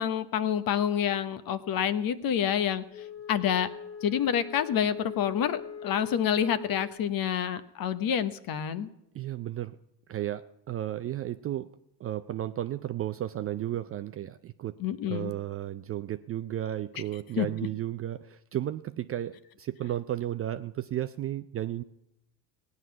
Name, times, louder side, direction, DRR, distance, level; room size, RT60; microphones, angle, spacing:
voice 1, 0.0-2.8 3.3-3.7 4.0-8.9 14.8-15.3 17.4-17.5, left 9 dB, 45° left, 12 dB, 1.0 m, -28 dB
Wind instrument woodwind instrument, 2.9-7.1, left 6 dB, 5° left, 2.0 m, -42 dB
voice 2, 9.1-9.8 10.1-11.7 12.0-14.8 15.1-21.8, right 12 dB, 30° right, 11 dB, 0.4 m, -33 dB
17.0 x 9.6 x 5.9 m, 0.83 s
supercardioid pair, 85°, 50 cm